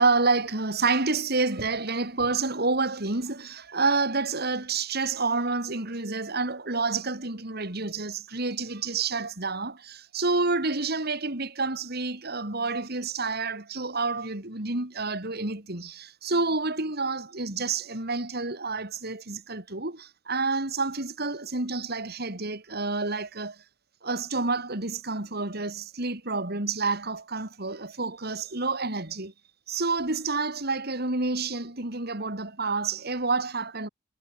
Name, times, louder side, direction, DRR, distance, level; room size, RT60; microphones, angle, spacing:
voice 1, 0.0-23.6 24.0-29.3 29.7-33.9, right 3 dB, 55° right, 4.1 m, -29 dB
head